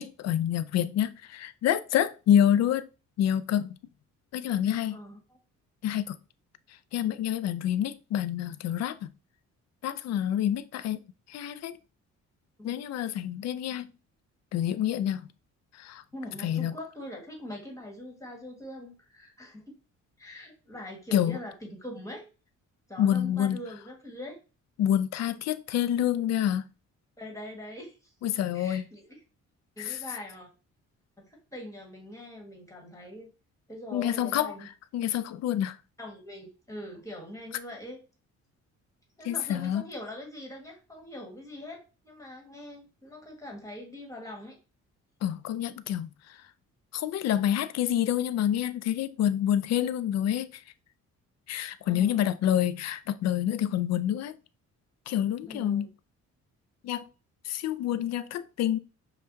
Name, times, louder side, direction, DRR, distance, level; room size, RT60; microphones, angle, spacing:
voice 1, 0.0-2.9 3.2-3.8 4.3-5.0 5.8-6.2 6.9-9.1 9.8-11.0 11.3-11.8 12.6-13.9 14.5-15.3 15.8-16.0 16.4-16.7 21.1-21.4 23.0-23.6 24.8-26.6 28.2-28.8 29.8-30.0 33.9-34.5 34.9-35.8 39.3-39.8 45.2-46.1 46.9-50.6 51.5-54.4 55.1-55.9 56.8-57.1 57.5-58.8, left 10 dB, 60° left, 0.4 m, -27 dB
voice 2, 4.9-5.4 12.6-12.8 16.1-19.7 20.2-22.2 22.9-24.4 27.2-28.0 28.5-29.2 29.8-30.5 31.2-33.3 33.7-34.7 36.0-38.0 39.2-44.6 51.8-52.2 55.5-55.9, left 1 dB, 10° left, 1.6 m, -42 dB
5.5 x 2.3 x 2.6 m
cardioid pair, 90°, 30 cm